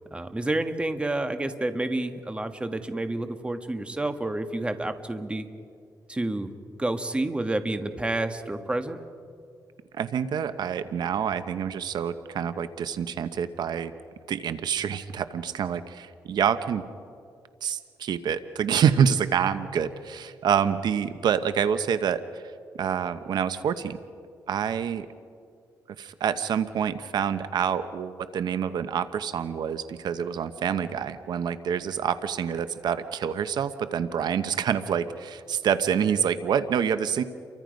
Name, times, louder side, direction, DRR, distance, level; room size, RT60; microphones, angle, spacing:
voice 1, 0.1-5.5 6.1-6.5 6.8-9.0, right 2 dB, 15° right, 8 dB, 1.5 m, -29 dB
voice 2, 9.9-13.9 14.3-16.8 17.6-22.4 22.8-24.0 24.5-25.1 26.0-37.2, right 8 dB, 75° right, 11 dB, 0.9 m, -27 dB
29.5 x 24.0 x 5.2 m, 2.3 s
cardioid pair, 100°, 7 cm